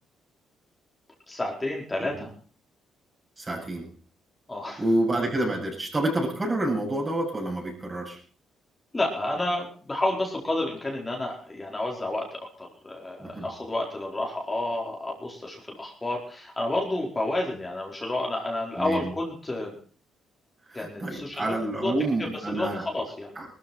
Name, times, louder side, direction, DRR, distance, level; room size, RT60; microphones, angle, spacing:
voice 1, 1.3-2.3 4.5-4.8 8.9-19.8 20.7-21.6 21.8-21.9 22.2-23.4, left 2 dB, 20° left, -1 dB, 4.7 m, -30 dB
voice 2, 3.4-3.9 4.8-8.2 13.2-13.5 18.8-19.1 20.7-22.9 23.4-23.5, right 1 dB, 25° right, 0 dB, 7.9 m, -28 dB
20.0 x 14.0 x 4.4 m, 0.41 s
cardioid pair, 90°, 0 cm